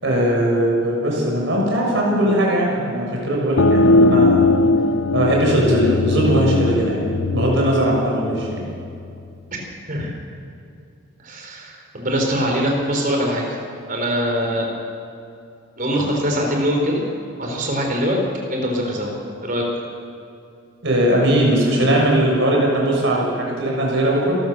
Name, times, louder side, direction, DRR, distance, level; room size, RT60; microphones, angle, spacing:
voice 1, 0.0-4.6 5.1-8.6 20.8-24.4, right 1 dB, 60° right, -2 dB, 6.6 m, -19 dB
sound 1, 3.6-9.0, left 2 dB, 75° left, 0.7 m, -19 dB
voice 2, 11.2-13.6 13.9-14.7 15.8-17.0 17.4-18.2 18.5-19.1 19.4-19.8, equal, 40° right, 1 dB, 4.5 m, -22 dB
27.0 x 14.5 x 6.8 m, 2.5 s
head